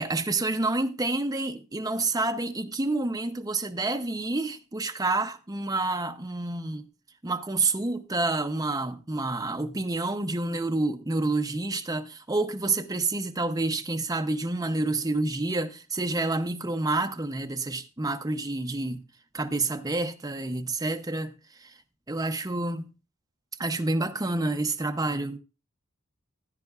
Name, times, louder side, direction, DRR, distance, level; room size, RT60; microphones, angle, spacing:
voice 1, 0.0-6.9 7.2-19.0 19.3-21.3 21.6-21.7 22.1-22.9 23.6-25.4, right 2 dB, 15° right, 0.6 m, -28 dB
15.5 x 9.0 x 2.4 m
head